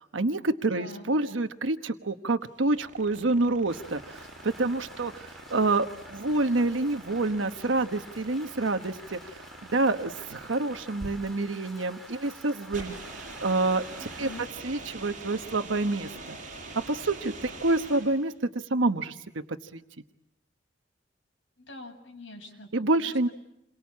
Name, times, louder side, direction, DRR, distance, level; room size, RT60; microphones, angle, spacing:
voice 1, 0.0-9.4 9.7-13.0 13.4-14.3 14.6-16.4 16.9-19.4 19.7-19.8 22.7-23.3, right 2 dB, 85° right, 8 dB, 1.2 m, -28 dB
voice 2, 0.7-1.1 14.0-14.5 21.6-23.3, left 2 dB, 75° left, 3 dB, 7.2 m, -45 dB
sound 1, 2.4-18.3, right 2 dB, 45° right, 6.1 m, -44 dB
Rain, 3.7-14.5, right 1 dB, ahead, 3.5 m, -49 dB
29.0 x 23.5 x 8.5 m, 0.83 s
head